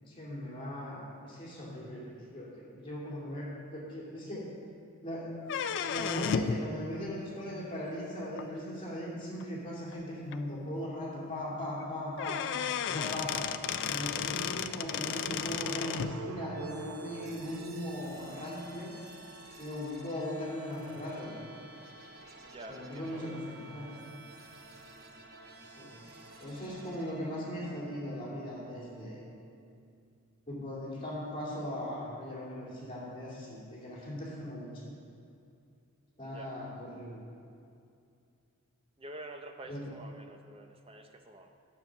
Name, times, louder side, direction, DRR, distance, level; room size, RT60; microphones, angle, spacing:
voice 1, 0.0-4.5 5.0-12.4 12.8-13.4 13.8-18.9 19.6-21.5 22.7-23.9 25.6-26.0 26.4-29.2 30.5-34.9 36.2-37.2 39.7-39.8, left 1 dB, 25° left, -6 dB, 2.6 m, -39 dB
sound 1, 5.4-6.6 8.4-8.5 9.4-9.5 9.9-10.0 10.3-10.4 11.8-11.9 12.2-16.1, left 8 dB, 55° left, 0.4 m, -34 dB
sound 2, 14.2-18.4, right 5 dB, 75° right, 0.4 m, -47 dB
sound 3, 16.5-30.4, right 2 dB, 45° right, 1.0 m, -52 dB
voice 2, 22.4-23.4 36.2-36.5 39.0-41.5, right 1 dB, 25° right, 5 dB, 0.7 m, -48 dB
9.8 x 7.1 x 6.4 m, 2.5 s
head